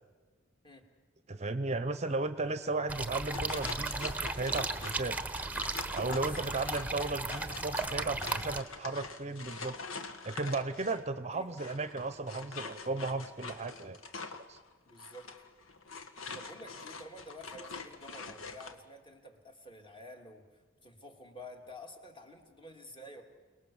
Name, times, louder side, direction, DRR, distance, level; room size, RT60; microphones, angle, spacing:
voice 1, 1.3-5.2 5.9-9.8 10.2-14.0 14.5-14.6, right 3 dB, 35° right, 12 dB, 0.8 m, -35 dB
sound 1, 2.9-8.6, right 3 dB, 10° right, 1.1 m, -36 dB
sound 2, 3.3-11.1 11.5-18.7, left 4 dB, 80° left, 1.7 m, -45 dB
voice 2, 6.2-6.5 11.3-11.8 14.8-15.3 16.3-20.5 20.8-23.2, equal, 25° left, 3 dB, 2.9 m, -50 dB
29.0 x 20.0 x 7.2 m, 1.4 s
head